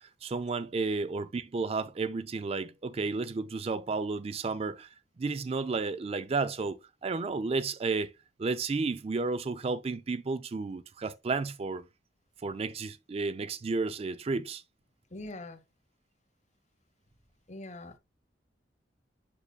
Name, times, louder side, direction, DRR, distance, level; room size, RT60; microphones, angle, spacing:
voice 1, 0.0-4.9 5.2-8.1 8.4-11.8 12.4-14.6, right 4 dB, 35° right, 0.4 m, -32 dB
voice 2, 15.1-15.6 17.5-18.0, left 2 dB, 40° left, 1.1 m, -42 dB
7.2 x 6.5 x 2.3 m
head